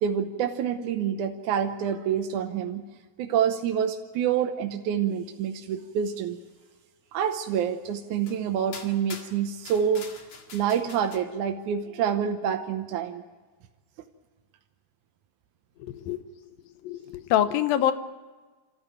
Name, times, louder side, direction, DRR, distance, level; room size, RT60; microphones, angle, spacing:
voice 1, 0.0-2.8 3.2-6.4 7.1-10.1 10.5-13.2, right 8 dB, 70° right, 4 dB, 2.2 m, -27 dB
sound 1, 7.5-7.6 8.2-8.4 8.7-11.2, left 5 dB, 50° left, 2.7 m, -44 dB
voice 2, 15.8-16.2 16.8-17.9, left 11 dB, 85° left, 11 dB, 2.8 m, -25 dB
27.0 x 14.5 x 9.3 m, 1.3 s
omnidirectional pair, 4.0 m